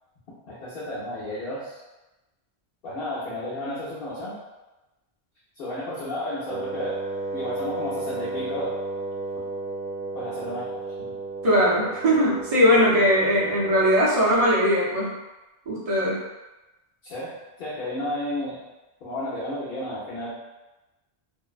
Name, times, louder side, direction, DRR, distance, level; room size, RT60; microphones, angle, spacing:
voice 1, 0.5-1.8 2.8-4.4 5.6-7.0 7.3-8.7 10.1-10.7 11.0-11.1 17.0-17.3 17.6-18.6 19.0-20.3, left 1 dB, 65° left, -11 dB, 0.8 m, -32 dB
Wind instrument woodwind instrument, 6.5-14.1, right 3 dB, 80° right, 1.0 m, -33 dB
voice 2, 11.4-15.2 15.7-16.2, equal, 40° right, -7 dB, 0.7 m, -20 dB
2.6 x 2.0 x 2.4 m, 1.0 s
omnidirectional pair, 1.0 m